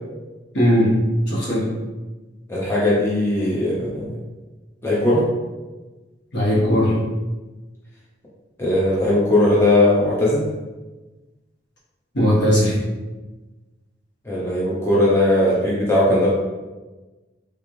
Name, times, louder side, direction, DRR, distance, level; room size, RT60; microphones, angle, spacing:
voice 1, 0.5-0.9 1.3-1.7 6.3-6.9 12.1-12.8, equal, 65° left, -6 dB, 1.1 m, -18 dB
voice 2, 2.5-4.2 4.8-5.3 8.6-10.5 14.2-16.3, left 1 dB, 15° left, -7 dB, 0.6 m, -18 dB
3.4 x 3.2 x 2.5 m, 1.2 s
head